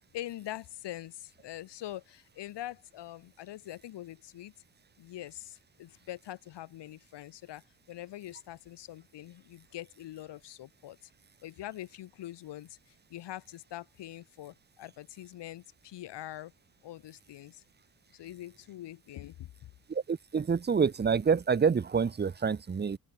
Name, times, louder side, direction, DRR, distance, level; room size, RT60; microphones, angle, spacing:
voice 1, 0.1-4.5 5.0-7.6 7.9-11.0 11.4-12.8 13.1-16.5 16.8-17.6 18.1-19.5, left 14 dB, 75° left, 4.6 m, -43 dB
voice 2, 19.9-23.0, right 6 dB, 25° right, 1.1 m, -27 dB
open air
cardioid pair, 110°, 42 cm